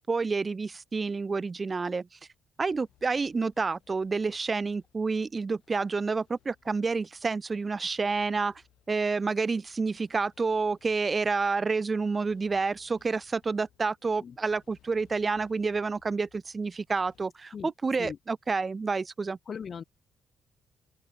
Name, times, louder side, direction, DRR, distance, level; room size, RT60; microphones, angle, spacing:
voice 1, 0.0-2.1 2.6-8.5 8.9-19.4, right 4 dB, 30° right, 0.5 m, -29 dB
sound 1, 2.7-17.2, left 11 dB, 75° left, 6.8 m, -66 dB
voice 2, 19.5-19.8, left 6 dB, 50° left, 1.0 m, -38 dB
open air
cardioid pair, 90°, 0 cm